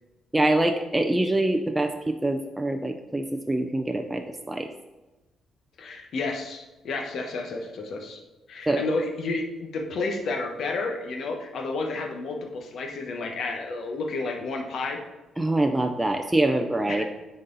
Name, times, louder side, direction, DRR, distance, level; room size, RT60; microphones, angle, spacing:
voice 1, 0.3-4.7 8.7-8.8 15.4-17.0, right 1 dB, 10° right, 5 dB, 0.4 m, -25 dB
voice 2, 5.8-8.2 8.5-15.0 16.9-17.0, left 3 dB, 60° left, 3 dB, 1.1 m, -31 dB
9.2 x 4.1 x 3.9 m, 1.1 s
cardioid pair, 115°, 0 cm